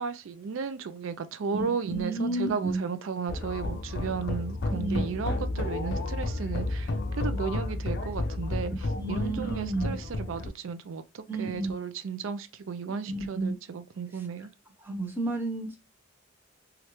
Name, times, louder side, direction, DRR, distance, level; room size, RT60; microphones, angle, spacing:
voice 1, 0.0-14.5, right 5 dB, 80° right, 0.4 m, -34 dB
voice 2, 1.5-2.8 4.7-5.0 9.0-9.9 11.3-11.7 13.1-13.6 14.8-15.8, right 2 dB, 10° right, 0.7 m, -31 dB
sound 1, 3.3-10.5, left 2 dB, 55° left, 0.5 m, -32 dB
3.2 x 2.4 x 2.9 m
head